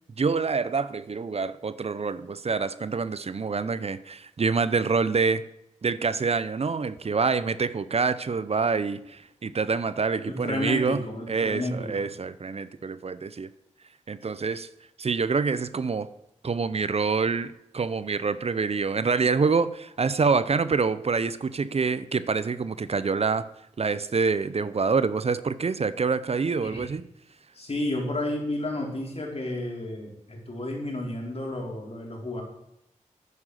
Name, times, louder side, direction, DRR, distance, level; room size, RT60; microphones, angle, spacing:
voice 1, 0.2-5.4 5.8-11.0 11.3-13.5 14.1-14.7 15.0-16.1 16.4-23.4 23.8-27.0, right 5 dB, 55° right, 15 dB, 0.6 m, -26 dB
voice 2, 10.3-12.1 26.6-26.9 27.5-32.4, left 1 dB, 50° left, -1 dB, 4.4 m, -31 dB
9.8 x 9.7 x 6.5 m, 0.80 s
cardioid pair, 45°, 13 cm